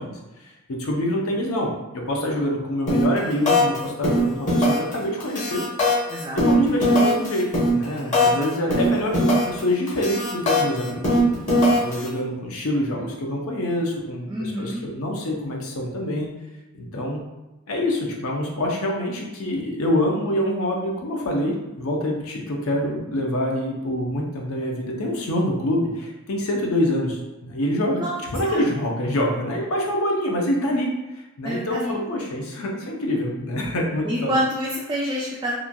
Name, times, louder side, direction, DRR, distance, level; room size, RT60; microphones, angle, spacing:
voice 1, 0.0-5.6 6.3-7.5 7.7-11.2 11.7-16.3 16.7-17.2 17.7-28.0 28.3-34.3, left 1 dB, 90° left, 0 dB, 0.6 m, -26 dB
sound 1, 2.9-3.2 3.5-3.8 4.0-4.9 5.2-8.4 8.7-9.6 9.9-12.1, left 1 dB, 35° left, 1.0 m, -20 dB
voice 2, 6.1-6.4 8.2-8.9 14.3-14.8 28.0-28.7 31.4-32.0 34.0-35.5, equal, 20° right, -5 dB, 0.3 m, -28 dB
2.9 x 2.5 x 2.2 m, 1.0 s
head